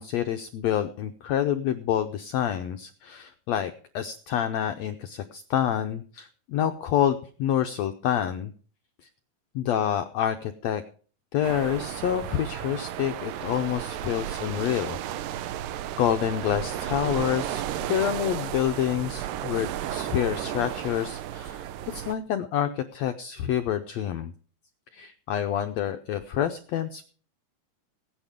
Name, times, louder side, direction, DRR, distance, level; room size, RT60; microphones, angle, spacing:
voice 1, 0.0-8.5 9.5-10.8 11.3-15.0 16.0-17.6 17.9-24.3 24.9-27.0, left 10 dB, 80° left, 8 dB, 1.5 m, -27 dB
sound 1, 11.4-22.1, right 11 dB, 85° right, 2.5 m, -33 dB
16.5 x 9.6 x 5.1 m, 0.42 s
omnidirectional pair, 3.9 m